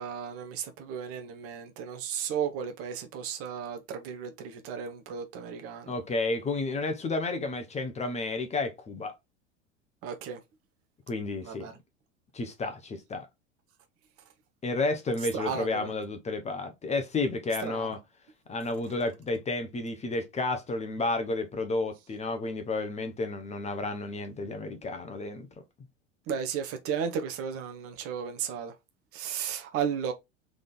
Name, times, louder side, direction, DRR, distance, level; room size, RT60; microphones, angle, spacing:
voice 1, 0.0-5.9 10.0-10.4 11.4-11.7 15.3-15.9 17.6-17.9 26.3-28.7 29.1-30.1, right 7 dB, 40° right, 1.0 m, -34 dB
voice 2, 5.9-9.1 11.1-11.7 12.3-13.3 14.6-18.0 18.5-25.5, left 3 dB, 20° left, 1.0 m, -31 dB
3.8 x 3.4 x 4.0 m
figure-of-eight pair, 75°, 36 cm